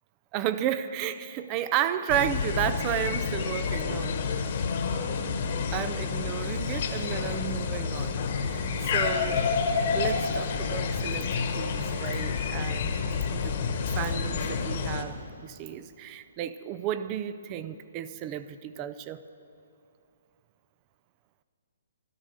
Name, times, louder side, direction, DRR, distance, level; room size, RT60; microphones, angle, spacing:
voice 1, 0.3-4.5 5.7-8.7 8.9-9.5 9.9-12.9 13.3-13.6 14.0-19.2, right 11 dB, 25° right, 13 dB, 0.5 m, -33 dB
sound 1, 2.1-15.0, left 5 dB, 45° left, 1.3 m, -29 dB
13.0 x 12.5 x 6.6 m, 2.6 s
hypercardioid pair, 150°, 0 cm